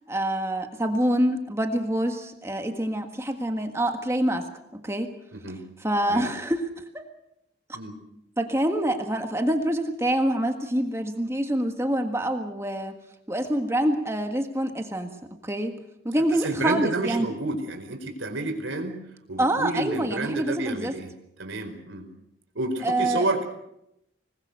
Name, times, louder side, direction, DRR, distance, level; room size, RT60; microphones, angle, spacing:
voice 1, 0.1-5.1 5.8-6.7 6.9-7.0 8.4-12.9 13.3-15.2 15.4-15.8 16.0-17.3 19.4-20.9 22.8-23.3, right 1 dB, 15° right, 5 dB, 1.6 m, -26 dB
voice 2, 5.3-5.6 6.1-6.3 7.7-8.0 16.3-19.0 19.3-21.1 21.4-22.1 22.5-23.4, right 2 dB, 90° right, 5 dB, 4.6 m, -30 dB
26.5 x 20.0 x 6.6 m, 0.81 s
head